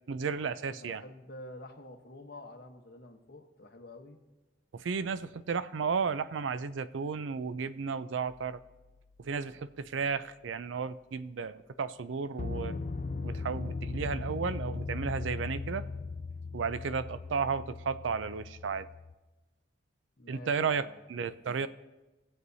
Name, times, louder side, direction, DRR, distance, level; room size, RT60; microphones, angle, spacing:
voice 1, 0.1-1.0 4.7-8.6 9.2-12.8 13.2-15.9 16.5-18.9 20.3-21.7, right 5 dB, 90° right, 14 dB, 0.4 m, -33 dB
voice 2, 0.7-4.2 20.2-21.0, left 1 dB, 60° left, 5 dB, 1.1 m, -49 dB
sound 1, 8.3-8.5 12.4-19.1, left 3 dB, 40° left, 0.4 m, -38 dB
19.0 x 7.9 x 2.7 m, 1.1 s
head